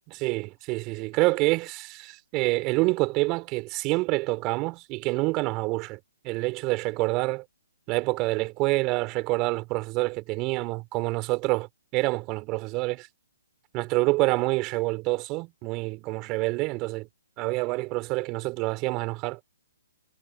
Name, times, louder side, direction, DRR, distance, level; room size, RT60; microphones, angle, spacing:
voice 1, 0.1-6.0 6.2-7.4 7.9-11.7 11.9-13.1 13.7-17.1 17.4-19.4, right 23 dB, 25° right, 3.3 m, -27 dB
hypercardioid pair, 140°, 0 cm